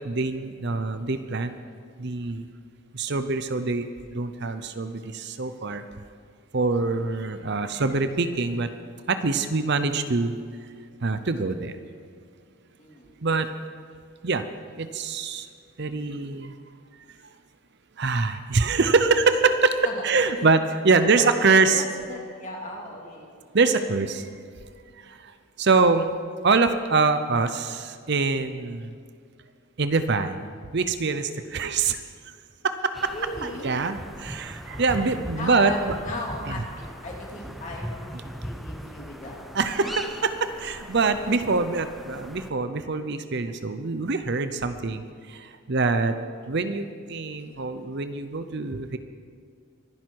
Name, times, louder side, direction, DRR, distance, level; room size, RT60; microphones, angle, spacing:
voice 1, 0.0-1.5 2.0-2.4 2.9-3.8 4.1-5.8 6.5-8.7 9.1-10.4 11.0-11.8 13.2-13.5 14.2-14.5 14.8-15.5 15.8-16.5 18.0-21.8 23.5-24.3 25.0-26.1 26.4-28.9 29.8-30.5 30.7-32.0 32.3-32.4 32.6-33.1 33.4-36.0 36.5-36.6 39.5-46.2 46.5-49.0, right 4 dB, 50° right, 10 dB, 0.7 m, -24 dB
voice 2, 9.3-9.7 12.8-13.2 19.8-19.9 20.4-20.5 20.9-23.4 33.1-33.8 35.3-39.4 39.8-39.9 41.2-41.4, left 1 dB, 35° left, -2 dB, 2.9 m, -37 dB
sound 1, 32.9-42.5, equal, ahead, 0.7 m, -39 dB
24.5 x 10.5 x 4.7 m, 2.1 s
head